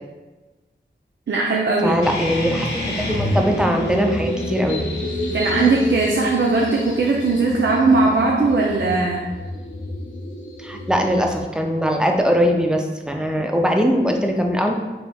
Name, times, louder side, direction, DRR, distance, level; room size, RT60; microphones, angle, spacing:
voice 1, 1.3-2.0 5.3-9.2, right 3 dB, 70° right, -2 dB, 0.5 m, -19 dB
voice 2, 1.8-4.8 10.6-14.7, equal, 5° right, 2 dB, 0.4 m, -21 dB
sound 1, 2.0-7.1, left 1 dB, 65° left, 0.9 m, -29 dB
sound 2, 2.8-11.4, left 1 dB, 80° left, 0.6 m, -30 dB
4.1 x 3.3 x 2.3 m, 1.2 s
wide cardioid pair, 70°, 20 cm